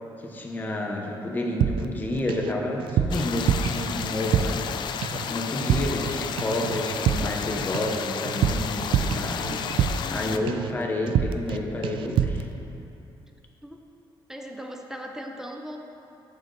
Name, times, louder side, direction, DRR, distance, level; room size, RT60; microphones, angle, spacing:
voice 1, 0.2-12.5, left 1 dB, 20° left, 0 dB, 0.9 m, -30 dB
sound 1, 1.6-2.5 2.8-4.7 5.0-5.3 5.6-6.1 6.4-10.2 10.5-10.8 11.1-11.6 11.8-12.5, right 8 dB, 75° right, 0.4 m, -26 dB
sound 2, 3.1-10.4, left 8 dB, 60° left, 0.4 m, -32 dB
voice 2, 10.0-10.7 13.2-13.3 13.6-13.9 14.3-15.8, equal, 5° right, 2 dB, 0.5 m, -40 dB
12.5 x 6.9 x 3.3 m, 2.7 s
cardioid pair, 150°, 9 cm